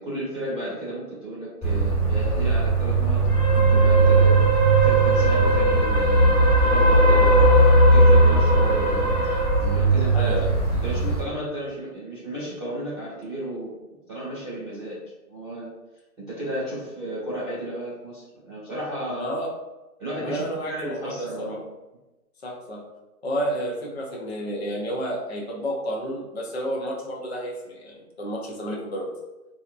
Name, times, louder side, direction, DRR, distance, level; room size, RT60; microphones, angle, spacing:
voice 1, 0.0-4.3 4.8-6.4 6.6-7.3 7.6-9.1 9.6-10.5 10.8-13.7 14.1-15.0 15.3-15.7 16.3-19.3 20.0-21.6, right 1 dB, ahead, -29 dB, 0.6 m, -33 dB
sound 1, 1.6-11.2, right 2 dB, 20° left, 1.4 m, -18 dB
voice 2, 10.1-10.5 19.1-19.5 20.2-21.6 22.4-22.8 23.2-29.1, equal, 45° left, -2 dB, 0.5 m, -31 dB
2.7 x 2.3 x 2.4 m, 1.0 s
hypercardioid pair, 170°, 47 cm